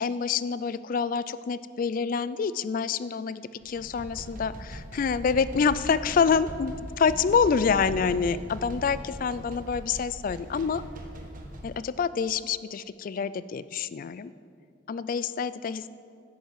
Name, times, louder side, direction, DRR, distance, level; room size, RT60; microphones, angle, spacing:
voice 1, 0.0-10.8 11.6-14.3 14.9-15.9, left 6 dB, 45° left, 16 dB, 0.3 m, -27 dB
sound 1, 3.6-11.8, equal, 45° right, 1.2 m, -40 dB
10.5 x 8.0 x 6.2 m, 2.3 s
head